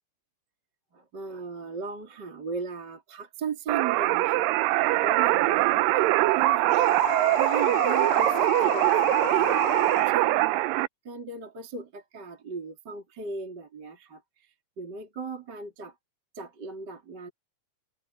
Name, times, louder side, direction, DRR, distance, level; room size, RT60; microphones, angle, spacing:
voice 1, 0.9-6.7 7.4-10.6 11.1-15.9 16.3-17.3, right 4 dB, 30° right, 3.6 m, -38 dB
sound 1, 3.7-10.9, right 18 dB, 80° right, 2.3 m, -23 dB
sound 2, 6.7-10.1, left 16 dB, 85° left, 2.3 m, -34 dB
omnidirectional pair, 4.1 m